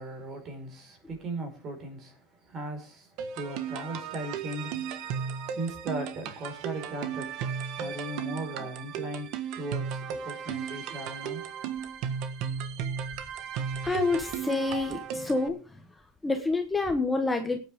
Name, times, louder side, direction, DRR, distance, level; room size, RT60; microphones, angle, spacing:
voice 1, 0.0-7.3 7.8-11.4, right 1 dB, 35° right, 4.8 m, -38 dB
sound 1, 3.2-15.5, right 7 dB, 60° right, 1.5 m, -35 dB
voice 2, 13.8-15.6 16.2-17.6, left 3 dB, 10° left, 1.2 m, -27 dB
20.5 x 9.2 x 3.6 m
cardioid pair, 155°, 0 cm